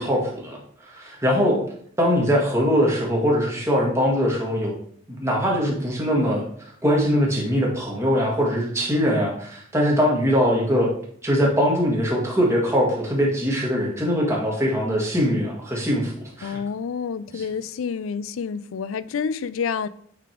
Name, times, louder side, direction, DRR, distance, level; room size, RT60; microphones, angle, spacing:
voice 1, 0.0-1.6 2.0-4.8 5.1-6.5 6.8-10.9 11.2-16.6 17.3-17.5, equal, 15° right, 1.7 m, -22 dB
voice 2, 16.4-19.9, left 6 dB, 80° left, 0.4 m, -28 dB
8.5 x 3.5 x 4.5 m
head